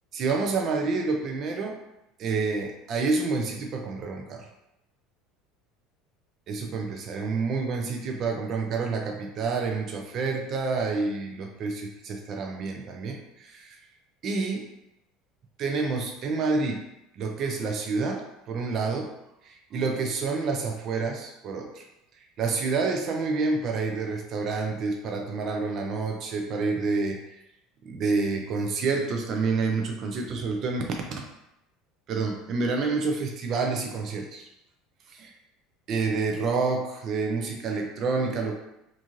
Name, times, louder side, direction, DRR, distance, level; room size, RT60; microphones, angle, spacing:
voice 1, 0.1-1.8 2.2-4.5 6.5-13.8 14.2-14.6 15.6-16.8 17.1-19.1 19.4-21.8 22.2-27.4 27.9-31.2 32.1-34.5 35.1-35.4 35.9-38.6, right 4 dB, 35° right, 2 dB, 0.3 m, -28 dB
2.5 x 2.4 x 2.9 m, 0.85 s
cardioid pair, 155°, 0 cm